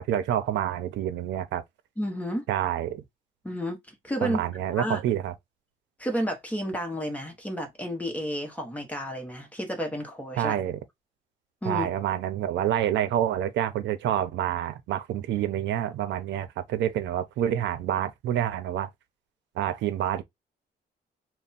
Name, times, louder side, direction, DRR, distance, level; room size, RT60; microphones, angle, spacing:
voice 1, 0.0-1.6 2.5-3.0 4.2-5.3 10.4-10.8 11.7-18.9 19.6-20.2, right 11 dB, 90° right, 0.6 m, -28 dB
voice 2, 2.0-2.5 3.4-4.4 4.7-5.0 6.0-10.6 11.6-11.9, equal, 10° left, 0.9 m, -31 dB
3.4 x 2.1 x 4.0 m
cardioid pair, 165°, 18 cm